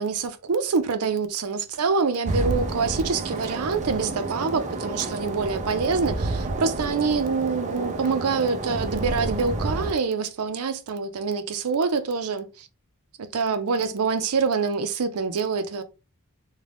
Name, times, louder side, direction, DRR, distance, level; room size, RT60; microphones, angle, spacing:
voice 1, 0.0-12.7 13.2-15.8, right 5 dB, 75° right, 0.5 m, -26 dB
sound 1, 2.3-9.9, right 2 dB, 35° right, 0.6 m, -30 dB
3.7 x 2.2 x 3.4 m
head